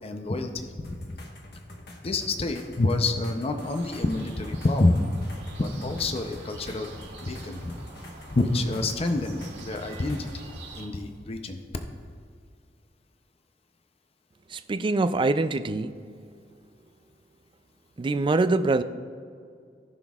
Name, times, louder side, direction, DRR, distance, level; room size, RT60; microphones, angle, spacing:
voice 1, 0.0-1.2 2.0-5.1 5.6-6.9 7.2-7.8 8.3-10.5 10.8-11.6, left 2 dB, 35° left, 6 dB, 0.6 m, -27 dB
sound 1, 0.8-10.4 11.8-11.9, left 1 dB, 60° left, 1.3 m, -46 dB
sound 2, 3.6-10.9, right 2 dB, 65° right, 1.9 m, -44 dB
voice 2, 14.5-16.0 18.0-18.8, right 3 dB, 30° right, 11 dB, 0.3 m, -24 dB
18.0 x 6.1 x 2.4 m, 2.2 s
head